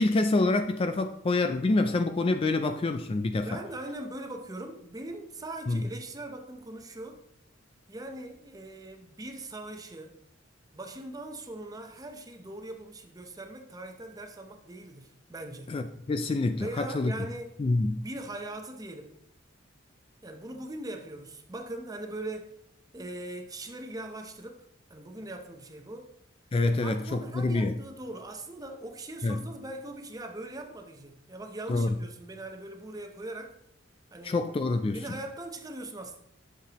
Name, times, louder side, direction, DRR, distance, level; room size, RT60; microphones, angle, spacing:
voice 1, 0.0-3.6 5.7-5.9 15.7-17.1 17.6-18.1 26.5-27.8 29.2-29.4 31.7-31.9 34.2-35.0, left 2 dB, 25° left, 0.3 m, -27 dB
voice 2, 3.4-7.2 7.9-10.2 10.7-15.7 16.6-17.5 17.9-19.2 20.2-22.5 22.9-26.1 26.8-33.5 34.1-34.4 34.8-36.2, right 1 dB, 20° right, 0.7 m, -41 dB
9.6 x 6.6 x 3.0 m
head